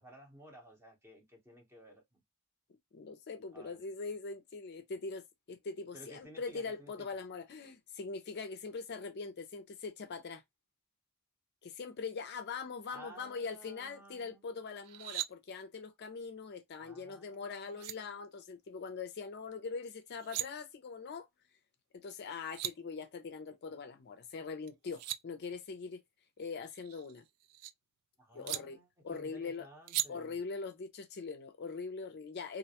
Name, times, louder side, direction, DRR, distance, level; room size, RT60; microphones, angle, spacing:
voice 1, 0.0-2.0 3.5-3.8 5.9-6.9 12.9-14.5 16.8-17.8 28.2-30.4, right 1 dB, 10° right, 0.8 m, -55 dB
voice 2, 2.9-10.4 11.6-21.3 21.9-26.0 26.4-27.3 28.3-28.8 29.0-29.7 30.1-32.6, left 4 dB, 45° left, 0.4 m, -42 dB
sound 1, 14.8-15.3 17.3-17.4 17.7-17.9 20.0-20.5 22.1-22.2 22.4-22.7 24.7-25.2 26.7-27.7 28.5-28.6 29.9-30.1, right 14 dB, 90° right, 0.3 m, -38 dB
2.4 x 2.1 x 2.8 m
head